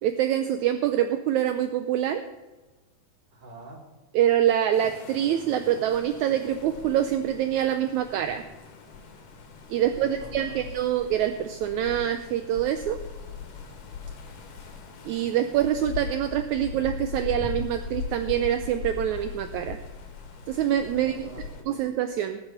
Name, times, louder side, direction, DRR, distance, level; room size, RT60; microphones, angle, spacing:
voice 1, 0.0-2.2 4.2-8.4 9.7-13.0 15.1-19.8 20.5-21.3 21.7-22.4, right 11 dB, 75° right, 8 dB, 1.9 m, -25 dB
voice 2, 3.3-3.9 9.9-10.7 20.9-21.8, right 2 dB, 15° right, -1 dB, 2.5 m, -46 dB
sound 1, 4.7-21.6, left 5 dB, 80° left, 3.2 m, -40 dB
20.0 x 6.9 x 5.8 m, 1.2 s
omnidirectional pair, 3.7 m